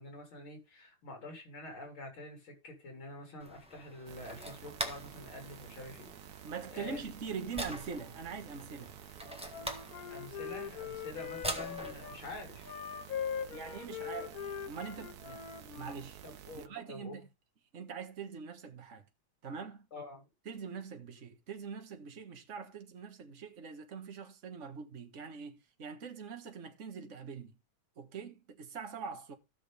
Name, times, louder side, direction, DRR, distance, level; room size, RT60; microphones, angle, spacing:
voice 1, 0.0-6.1 6.7-7.0 10.1-12.8 16.2-17.2 19.9-20.2, left 2 dB, 85° left, 4.4 m, -47 dB
sound 1, 3.4-12.7, equal, 5° right, 1.3 m, -44 dB
sound 2, 4.1-16.7, right 10 dB, 60° right, 1.1 m, -52 dB
voice 2, 6.4-8.9 13.5-15.4 15.7-16.2 16.5-17.2 17.7-19.0 19.4-19.9 20.4-27.5 28.0-29.4, right 6 dB, 40° right, 1.7 m, -43 dB
Wind instrument woodwind instrument, 9.2-12.2 12.6-16.0, left 8 dB, 55° left, 1.2 m, -41 dB
16.0 x 6.4 x 3.4 m
omnidirectional pair, 2.2 m